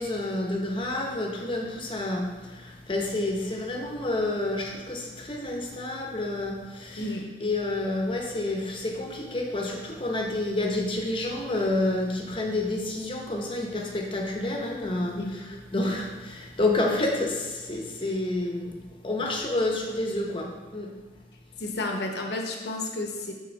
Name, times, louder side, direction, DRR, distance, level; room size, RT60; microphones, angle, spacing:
voice 1, 0.0-7.1 7.4-20.9, left 2 dB, 30° left, 0 dB, 0.8 m, -29 dB
voice 2, 21.6-23.3, left 2 dB, 65° left, 2 dB, 0.8 m, -31 dB
7.0 x 6.3 x 3.2 m, 1.4 s
head